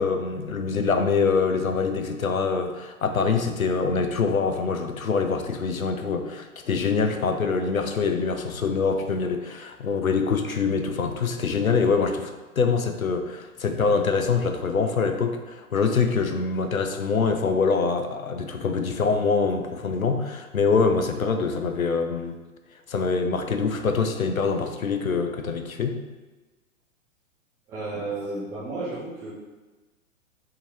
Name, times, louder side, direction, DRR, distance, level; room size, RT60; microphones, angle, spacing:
voice 1, 0.0-22.4 22.9-26.0, left 5 dB, 90° left, 6 dB, 0.6 m, -24 dB
voice 2, 27.7-29.3, right 2 dB, 10° right, -7 dB, 0.3 m, -32 dB
3.7 x 2.7 x 4.5 m, 1.2 s
figure-of-eight pair, 105°, 40 cm